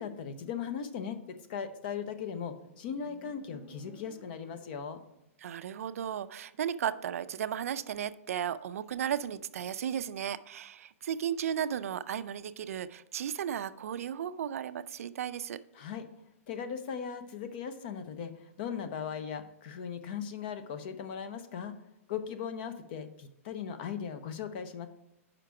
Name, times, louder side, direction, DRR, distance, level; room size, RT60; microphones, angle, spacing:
voice 1, 0.0-5.0 15.7-16.1 16.5-21.8 22.1-24.9, left 7 dB, 40° left, 10 dB, 0.6 m, -38 dB
Motorcycle, 1.7-5.2, left 1 dB, 5° left, 1.2 m, -56 dB
voice 2, 5.4-15.6, right 9 dB, 70° right, 13 dB, 0.4 m, -35 dB
5.8 x 5.1 x 4.6 m, 0.85 s
hypercardioid pair, 160°, 8 cm